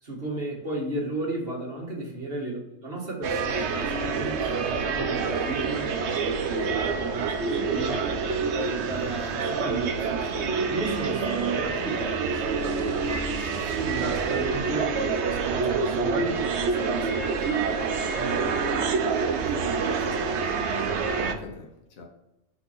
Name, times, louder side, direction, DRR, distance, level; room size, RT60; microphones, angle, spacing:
voice 1, 0.0-8.1 8.6-13.4 13.8-19.1 19.4-20.2 20.5-20.8, right 2 dB, 45° right, -2 dB, 1.8 m, -34 dB
sound 1, 3.2-21.3, right 5 dB, 60° right, 0.9 m, -27 dB
Wind instrument woodwind instrument, 3.9-9.0, equal, 35° left, 1.8 m, -46 dB
voice 2, 13.5-14.3 19.7-19.9 20.2-20.4 21.2-22.1, left 3 dB, 80° left, 1 dB, 1.6 m, -44 dB
5.5 x 4.2 x 5.7 m, 0.92 s
omnidirectional pair, 1.4 m